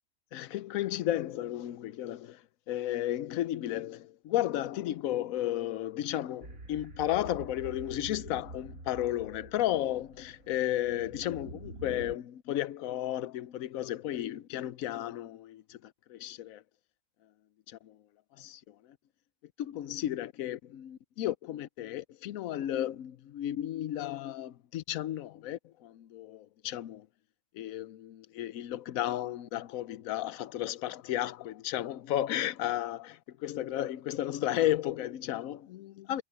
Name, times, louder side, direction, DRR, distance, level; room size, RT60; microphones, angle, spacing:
voice 1, 0.3-2.4 2.7-16.6 17.7-18.0 18.4-18.7 19.6-27.1 27.5-36.2, left 13 dB, 80° left, 1.1 m, -33 dB
sound 1, 6.4-12.2, right 2 dB, 75° right, 2.5 m, -47 dB
omnidirectional pair, 1.4 m